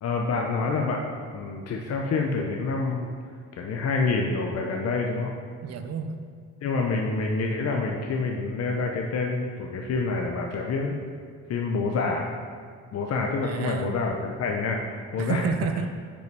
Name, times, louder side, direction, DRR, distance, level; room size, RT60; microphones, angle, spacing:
voice 1, 0.0-1.0 1.3-3.1 3.5-5.3 6.6-11.0 11.5-12.3 12.9-15.4, left 3 dB, 55° left, 1 dB, 0.7 m, -27 dB
voice 2, 5.6-6.2 13.4-14.0 15.2-15.9, right 5 dB, 55° right, 8 dB, 0.6 m, -29 dB
5.3 x 5.1 x 4.6 m, 2.1 s
cardioid pair, 90°, 30 cm